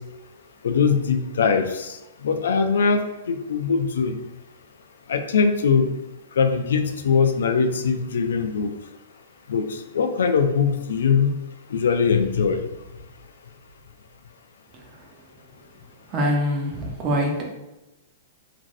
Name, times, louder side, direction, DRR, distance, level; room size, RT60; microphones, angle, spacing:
voice 1, 0.6-1.9 2.2-4.2 5.1-5.9 6.4-8.7 9.5-9.7 9.9-11.3 11.7-12.6, left 5 dB, 90° left, 8 dB, 0.3 m, -21 dB
voice 2, 16.1-17.4, equal, 30° right, -1 dB, 0.7 m, -24 dB
3.0 x 2.5 x 2.6 m, 0.98 s
hypercardioid pair, 145°, 0 cm